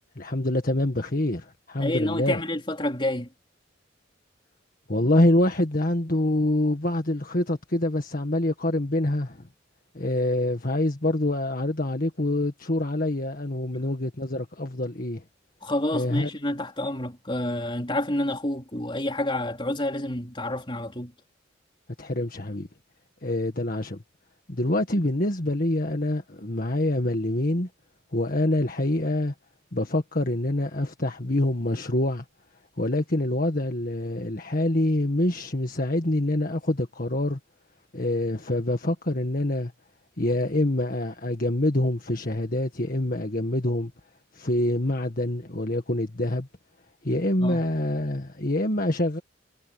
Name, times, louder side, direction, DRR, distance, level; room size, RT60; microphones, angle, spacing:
voice 1, 0.2-2.4 4.9-9.5 9.9-15.2 15.9-16.3 22.0-22.7 23.2-24.0 24.5-27.7 28.1-29.3 29.7-32.3 32.8-37.4 37.9-39.7 40.2-43.9 44.3-46.5 47.0-49.2, left 1 dB, 45° left, 1.8 m, -26 dB
voice 2, 1.8-3.3 13.7-13.8 15.6-21.1 47.4-47.6, left 1 dB, 25° left, 3.9 m, -29 dB
head